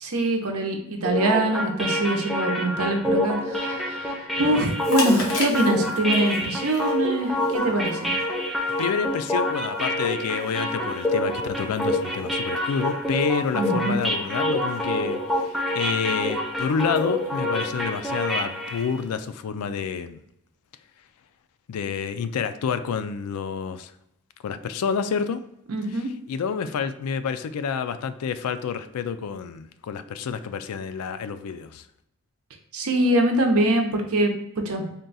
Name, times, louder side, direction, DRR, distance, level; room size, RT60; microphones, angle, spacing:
voice 1, 0.0-8.1 13.5-14.0 25.7-26.1 32.7-34.8, right 1 dB, 80° right, 3 dB, 0.7 m, -24 dB
sound 1, 1.0-18.9, left 1 dB, ahead, 0.4 m, -27 dB
Chewing mastication, 4.7-19.3, left 2 dB, 70° left, 1.1 m, -39 dB
voice 2, 8.8-20.2 21.7-23.9 24.4-25.4 25.9-31.9, left 6 dB, 85° left, 11 dB, 0.3 m, -28 dB
3.7 x 2.3 x 3.9 m, 0.79 s
head